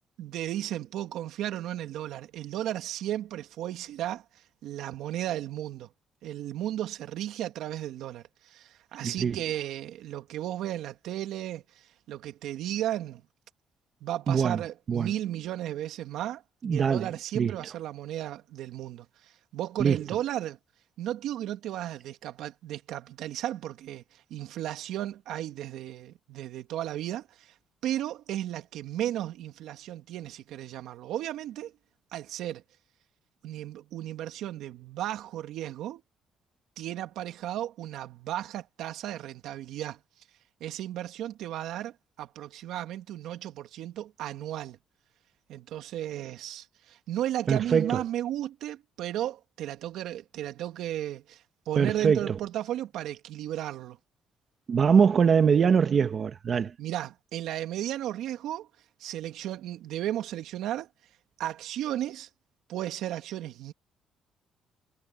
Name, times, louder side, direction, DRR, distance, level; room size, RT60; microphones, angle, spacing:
voice 1, 0.2-4.2 4.6-5.9 6.2-13.2 14.0-20.6 21.0-24.0 24.3-27.5 27.8-31.7 32.1-32.6 33.4-36.0 36.8-40.0 40.6-44.8 45.5-54.0 56.8-58.7 59.0-60.9 61.4-62.3 62.7-63.7, right 12 dB, 80° right, 2.5 m, -34 dB
voice 2, 9.0-9.4 14.3-14.6 14.9-15.1 16.6-17.1 17.3-17.5 19.8-20.0 47.5-48.0 51.8-52.4 54.7-56.7, right 6 dB, 45° right, 1.6 m, -23 dB
cardioid pair, 110°, 0 cm